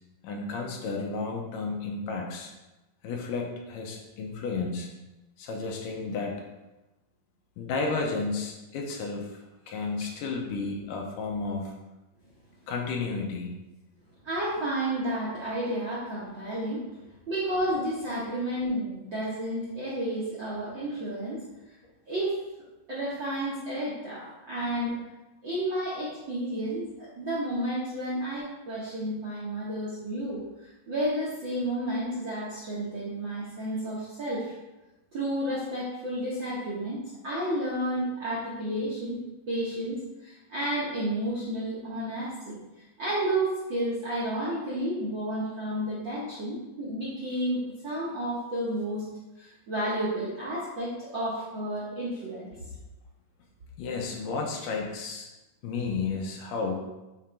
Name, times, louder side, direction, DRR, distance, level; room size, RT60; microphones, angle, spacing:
voice 1, 0.2-2.5 3.0-4.9 5.4-6.4 7.6-9.4 9.7-11.7 12.7-13.5 53.8-55.3 55.6-56.9, left 4 dB, 80° left, 1 dB, 2.4 m, -32 dB
voice 2, 14.2-16.8 17.3-21.4 22.1-22.4 22.9-25.0 25.4-34.5 35.1-39.2 39.5-42.6 43.0-49.0 49.4-52.7, right 1 dB, 55° right, -7 dB, 1.3 m, -31 dB
6.6 x 3.7 x 4.4 m, 1.0 s
omnidirectional pair, 3.9 m